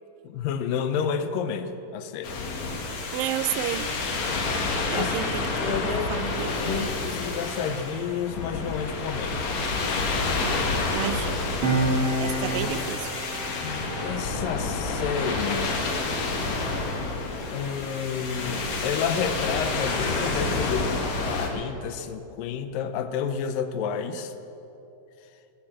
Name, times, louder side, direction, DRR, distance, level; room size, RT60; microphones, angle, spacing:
voice 1, 0.2-2.3 4.9-5.1 5.6-9.5 13.6-15.8 17.5-24.3, left 7 dB, 75° left, 10 dB, 2.3 m, -30 dB
sound 1, 2.2-21.5, left 3 dB, 55° left, 2.5 m, -29 dB
voice 2, 3.1-3.9 4.9-7.0 10.4-11.6 12.2-13.2, right 13 dB, 80° right, 15 dB, 2.2 m, -32 dB
Piano, 11.6-18.6 18.9-19.1, right 2 dB, 40° right, 2.4 m, -32 dB
18.5 x 10.0 x 7.5 m, 2.9 s
omnidirectional pair, 4.2 m